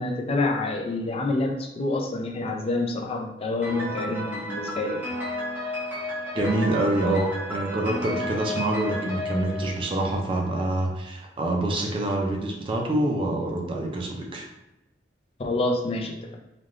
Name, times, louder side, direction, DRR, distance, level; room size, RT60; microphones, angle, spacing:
voice 1, 0.0-5.1 15.4-16.3, left 2 dB, 35° left, 2 dB, 0.4 m, -27 dB
Piano, 3.6-10.4, left 1 dB, 10° right, 0.8 m, -33 dB
voice 2, 6.3-14.5, right 1 dB, 30° right, 1 dB, 0.4 m, -26 dB
3.3 x 2.3 x 2.5 m, 0.96 s
head